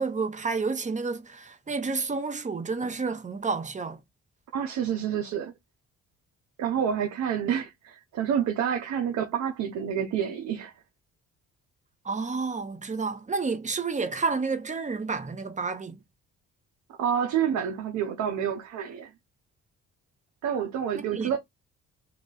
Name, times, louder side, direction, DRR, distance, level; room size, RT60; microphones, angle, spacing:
voice 1, 0.0-4.0 12.0-16.0 21.1-21.4, right 4 dB, 25° right, 0.8 m, -30 dB
voice 2, 4.5-5.5 6.6-10.7 17.0-19.1 20.4-21.4, right 8 dB, 70° right, 0.8 m, -28 dB
3.0 x 2.5 x 3.8 m
cardioid pair, 90°, 30 cm